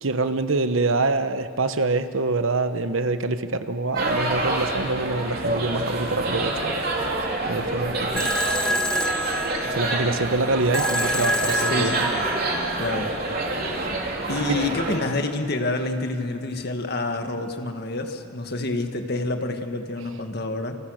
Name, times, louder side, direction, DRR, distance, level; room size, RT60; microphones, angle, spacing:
voice 1, 0.0-6.8 7.5-8.3 9.6-12.1 14.5-14.6, right 3 dB, 75° right, 10 dB, 1.2 m, -25 dB
sound 1, 3.9-15.0, right 2 dB, 45° right, 3.8 m, -27 dB
sound 2, 8.2-13.2, equal, 5° left, 1.0 m, -28 dB
voice 2, 11.6-12.2 12.8-13.1 14.3-20.8, left 2 dB, 50° left, 5 dB, 2.0 m, -28 dB
29.5 x 28.5 x 6.6 m, 2.5 s
head